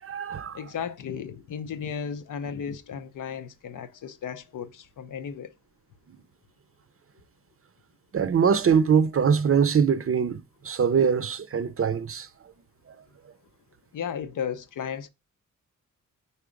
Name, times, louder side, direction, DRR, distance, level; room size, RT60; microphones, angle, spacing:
voice 1, 0.0-0.6 8.1-12.3, right 6 dB, 45° right, 0.5 m, -23 dB
voice 2, 0.5-5.5 13.9-15.1, left 7 dB, 85° left, 0.6 m, -35 dB
4.7 x 4.2 x 5.0 m
wide cardioid pair, 90°, 31 cm